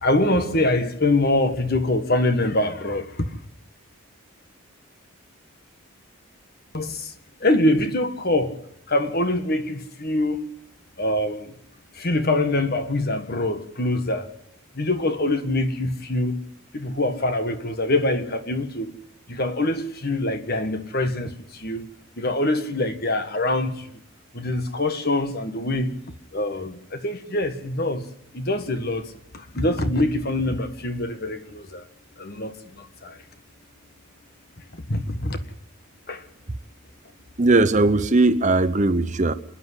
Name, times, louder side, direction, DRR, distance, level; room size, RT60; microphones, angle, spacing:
voice 1, 0.0-3.3 6.7-7.1 7.4-8.6 8.9-10.5 11.0-11.5 11.9-14.3 14.7-16.4 16.7-18.9 19.3-21.8 22.2-23.9 24.3-26.0 26.3-28.1 28.3-31.8 32.2-33.2 34.9-35.4 36.1-36.2, left 1 dB, 45° left, 1.6 m, -24 dB
voice 2, 37.4-39.3, right 2 dB, 35° right, 0.8 m, -19 dB
27.0 x 10.0 x 9.9 m
head